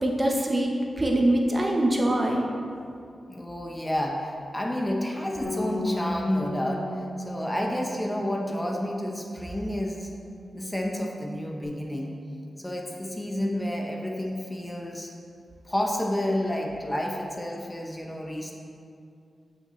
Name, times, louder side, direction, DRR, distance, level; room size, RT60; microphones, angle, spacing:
voice 1, 0.0-2.4, right 1 dB, 30° right, 0 dB, 0.9 m, -23 dB
voice 2, 3.3-10.1 10.5-12.1 12.6-15.1 15.7-18.5, left 1 dB, 15° left, 0 dB, 0.9 m, -30 dB
Bass guitar, 5.4-11.7, left 1 dB, 80° left, 1.9 m, -37 dB
8.9 x 6.8 x 3.1 m, 2.4 s
wide cardioid pair, 80°, 0 cm